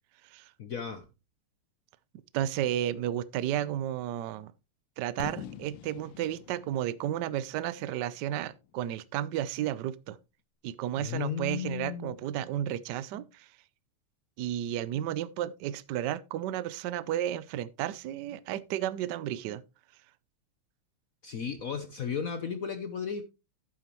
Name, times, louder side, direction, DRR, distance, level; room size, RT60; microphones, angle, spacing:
voice 1, 0.6-1.1 11.0-12.1 21.2-23.2, left 7 dB, 65° left, 0.8 m, -34 dB
voice 2, 2.3-4.5 5.0-10.2 10.6-13.5 14.4-19.6, right 11 dB, 70° right, 1.1 m, -33 dB
Fireworks, 5.2-9.1, left 10 dB, 85° left, 1.8 m, -46 dB
11.0 x 8.6 x 3.0 m
omnidirectional pair, 2.4 m